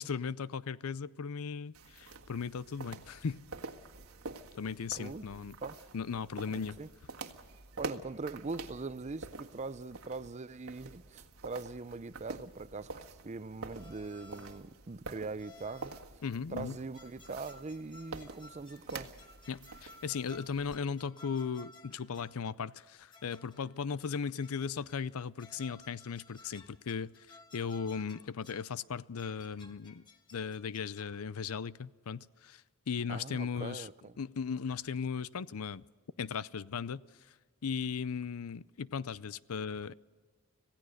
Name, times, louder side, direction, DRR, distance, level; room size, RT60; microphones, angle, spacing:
voice 1, 0.0-3.4 4.5-5.6 5.9-6.8 16.2-16.8 19.5-30.0 30.3-33.9 34.2-35.8 36.2-37.0 37.6-39.9, left 6 dB, 70° left, 0.5 m, -37 dB
sound 1, 1.7-20.8, right 3 dB, 75° right, 1.6 m, -47 dB
voice 2, 5.0-5.3 5.6-5.8 6.5-6.9 7.8-15.9 16.5-19.1 33.1-34.1, right 3 dB, 30° right, 0.5 m, -42 dB
sound 2, 13.7-14.7 15.4-16.1 16.7-22.4 23.1-23.8 24.4-25.1 25.4-28.7 29.2-31.3, left 2 dB, 20° left, 1.5 m, -57 dB
26.5 x 16.5 x 6.5 m
head